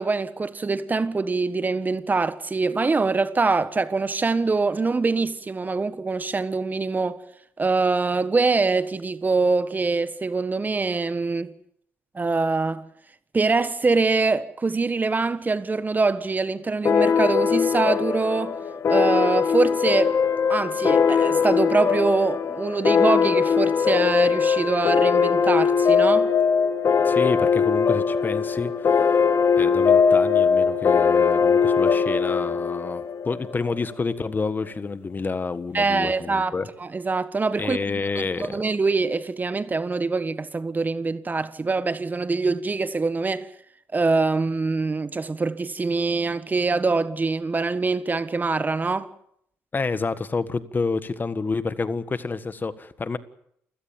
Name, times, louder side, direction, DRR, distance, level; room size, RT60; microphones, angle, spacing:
voice 1, 0.0-7.2 7.6-11.5 12.1-12.8 13.3-18.6 18.9-20.2 20.5-26.3 35.7-36.5 36.8-37.8 38.2-43.5 43.9-49.1, right 3 dB, 30° right, 1.4 m, -24 dB
sound 1, 16.8-33.9, left 6 dB, 45° left, 1.8 m, -21 dB
voice 2, 27.0-29.2 29.6-36.7 37.6-38.6 49.7-53.2, left 4 dB, 30° left, 1.5 m, -29 dB
29.0 x 16.5 x 7.3 m
supercardioid pair, 60°, 6 cm